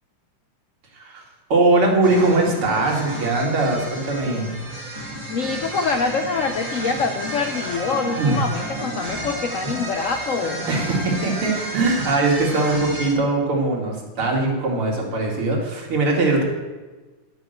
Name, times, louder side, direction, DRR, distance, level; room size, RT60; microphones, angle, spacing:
voice 1, 0.9-1.2 1.5-4.6 8.2-8.4 9.6-9.9 10.7-16.4, right 2 dB, 85° right, -1 dB, 3.2 m, -21 dB
sound 1, 2.0-13.1, right 1 dB, 15° right, 3.4 m, -32 dB
voice 2, 5.3-10.7, left 4 dB, 80° left, 6 dB, 0.7 m, -25 dB
12.5 x 5.5 x 7.8 m, 1.3 s
omnidirectional pair, 2.3 m